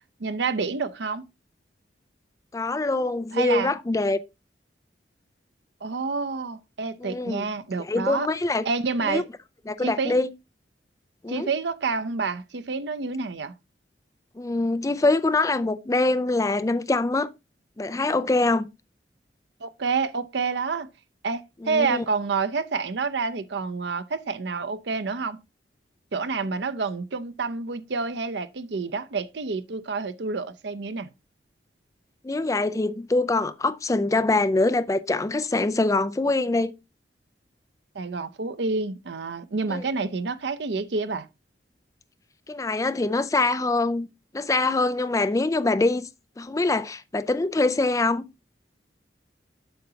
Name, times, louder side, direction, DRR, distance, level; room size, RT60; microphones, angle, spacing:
voice 1, 0.2-1.2 3.3-3.7 5.8-8.3 8.6-9.3 9.8-10.2 11.3-13.5 19.6-20.9 21.2-25.4 26.1-31.1 37.9-41.3, right 4 dB, 75° right, 0.6 m, -28 dB
voice 2, 2.5-4.2 7.0-7.5 7.8-8.6 9.0-9.2 9.7-10.3 11.2-11.5 14.4-17.3 17.8-18.7 21.6-22.0 32.2-36.7 39.7-39.8 42.5-44.1 44.3-46.1 46.4-48.2, left 2 dB, 20° left, 0.4 m, -24 dB
7.8 x 6.7 x 2.8 m
head